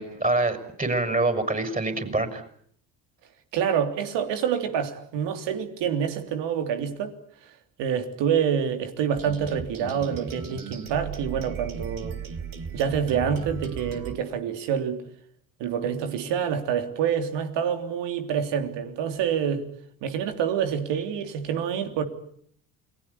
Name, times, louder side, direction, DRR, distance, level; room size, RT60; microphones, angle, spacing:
voice 1, 0.0-2.4, right 2 dB, 20° right, 10 dB, 6.4 m, -25 dB
voice 2, 3.5-7.2 7.8-12.2 12.7-15.0 15.6-19.6 20.0-22.1, right 8 dB, 70° right, 7 dB, 3.4 m, -27 dB
sound 1, 9.2-14.1, right 6 dB, 45° right, 4.1 m, -36 dB
29.0 x 20.5 x 8.6 m, 0.64 s
hypercardioid pair, 55°, 45 cm